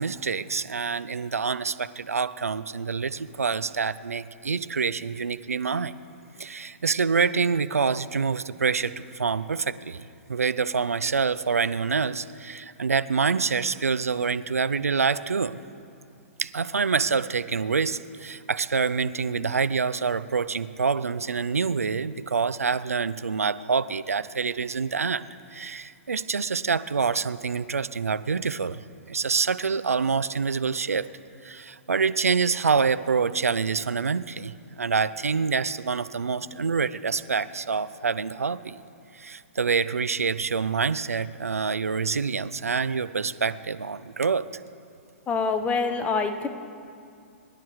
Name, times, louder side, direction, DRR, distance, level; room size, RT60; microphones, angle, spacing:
voice 1, 0.0-5.9 6.4-15.6 16.4-28.8 29.1-31.1 31.4-38.8 39.1-44.5, right 5 dB, 90° right, 15 dB, 0.4 m, -26 dB
voice 2, 45.3-46.5, left 4 dB, 20° left, 7 dB, 0.9 m, -25 dB
23.5 x 11.5 x 3.1 m, 2.4 s
hypercardioid pair, 120°, 8 cm